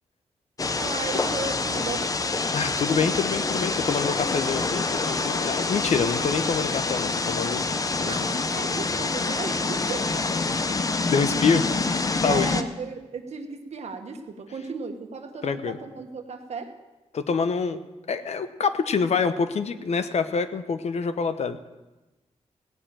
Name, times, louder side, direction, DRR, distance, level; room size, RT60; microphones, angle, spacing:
sound 1, 0.6-12.6, left 3 dB, 30° left, 0.7 m, -26 dB
voice 1, 0.8-2.1 8.0-10.3 12.2-16.7, right 4 dB, 65° right, 5 dB, 1.5 m, -35 dB
voice 2, 2.5-7.6 8.0-8.2 11.1-11.7 12.2-12.5 15.4-15.8 17.1-17.8 18.1-21.6, left 5 dB, 65° left, 10 dB, 0.9 m, -26 dB
17.0 x 6.7 x 8.9 m, 1.1 s
wide cardioid pair, 120°, 12 cm